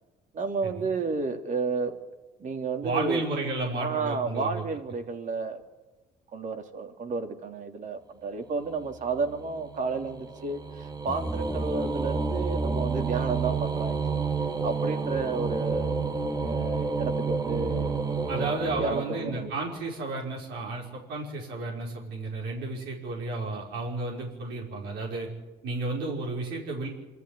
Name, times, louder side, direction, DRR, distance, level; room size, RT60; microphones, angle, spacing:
voice 1, 0.3-1.9 2.4-3.2 3.8-5.6 6.3-14.3 14.6-16.0 16.4-18.0 18.3-19.5, right 4 dB, 50° right, 6 dB, 3.1 m, -32 dB
voice 2, 2.8-4.6 18.3-25.3 25.6-26.9, right 2 dB, 80° right, -2 dB, 5.3 m, -32 dB
sound 1, 8.8-19.7, right 4 dB, 20° right, 1.9 m, -30 dB
26.0 x 14.0 x 10.0 m, 1.2 s
cardioid pair, 110°, 17 cm